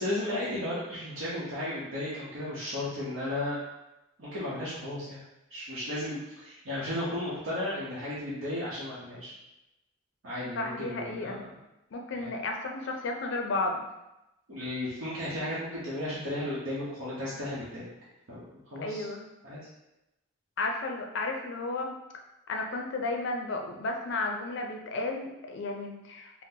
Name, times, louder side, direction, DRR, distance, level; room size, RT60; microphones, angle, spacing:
voice 1, 0.0-3.6 4.2-5.2 5.5-9.3 10.2-11.6 12.1-12.3 14.5-17.9 18.3-19.1 19.4-19.6, left 1 dB, 75° right, -9 dB, 0.8 m, -34 dB
voice 2, 10.6-11.4 11.9-13.8 18.8-19.2 20.6-21.9 22.5-26.5, left 3 dB, 60° left, 2 dB, 0.4 m, -33 dB
3.7 x 2.0 x 2.7 m, 0.93 s
head